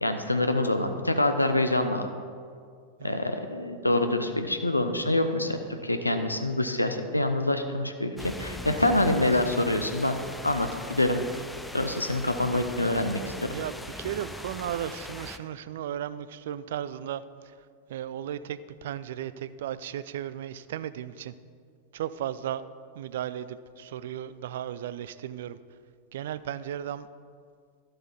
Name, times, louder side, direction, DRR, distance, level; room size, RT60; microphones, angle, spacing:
voice 1, 0.0-2.1 3.0-10.2 10.4-11.2 11.7-13.3, left 1 dB, 85° left, 7 dB, 0.6 m, -26 dB
sound 1, 8.2-15.4, left 1 dB, 5° left, 0.5 m, -40 dB
voice 2, 13.5-17.2 17.9-21.3 21.9-22.6 23.0-25.6 26.1-27.1, right 10 dB, 55° right, 15 dB, 0.3 m, -35 dB
11.5 x 7.8 x 4.4 m, 2.1 s
figure-of-eight pair, 90°, 0 cm